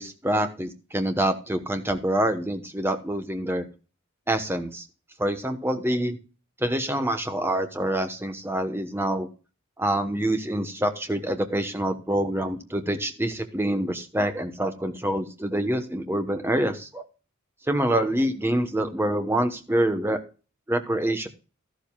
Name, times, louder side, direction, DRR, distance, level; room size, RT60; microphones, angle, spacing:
voice 1, 0.0-3.7 4.3-4.8 5.2-6.2 6.6-9.3 9.8-17.0 17.7-20.2 20.7-21.3, right 1 dB, 10° right, 7 dB, 1.1 m, -26 dB
13.5 x 12.0 x 2.3 m, 0.35 s
head